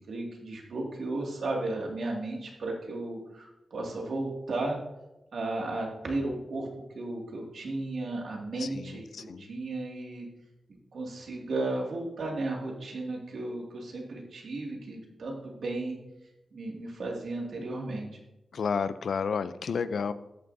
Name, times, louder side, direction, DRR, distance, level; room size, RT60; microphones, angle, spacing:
voice 1, 0.0-4.8 5.3-6.7 6.9-10.3 10.9-16.0 16.5-18.2, right 2 dB, 70° right, 0 dB, 2.2 m, -34 dB
voice 2, 8.6-9.5 18.5-20.1, left 6 dB, 75° left, 14 dB, 0.4 m, -31 dB
13.0 x 9.2 x 2.7 m, 0.97 s
wide cardioid pair, 120°, 0 cm